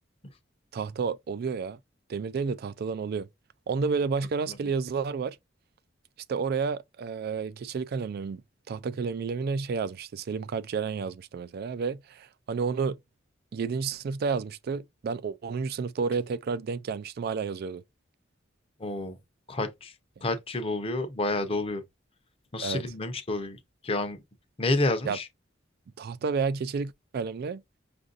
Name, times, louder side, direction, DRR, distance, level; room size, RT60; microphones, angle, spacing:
voice 1, 0.7-1.8 2.1-3.3 3.7-5.4 6.3-8.4 8.7-13.0 13.5-17.8 22.6-22.8 25.0-25.2 26.0-27.6, right 5 dB, 55° right, 0.3 m, -31 dB
voice 2, 18.8-19.2 19.5-19.9 20.2-21.8 22.5-24.2 24.6-25.3, left 2 dB, 30° left, 0.7 m, -29 dB
6.0 x 2.5 x 2.5 m
head